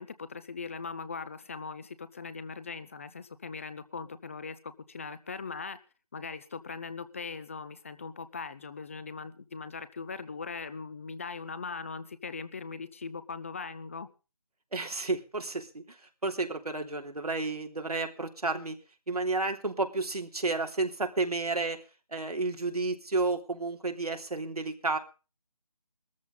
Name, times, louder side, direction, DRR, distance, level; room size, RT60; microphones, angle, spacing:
voice 1, 0.0-5.8 6.1-14.1, left 4 dB, 20° left, 14 dB, 0.8 m, -40 dB
voice 2, 14.7-15.8 16.2-18.8 19.1-21.8 22.1-25.0, right 3 dB, 90° right, 4 dB, 3.1 m, -31 dB
18.5 x 14.0 x 3.9 m, 0.34 s
figure-of-eight pair, 165°, 19 cm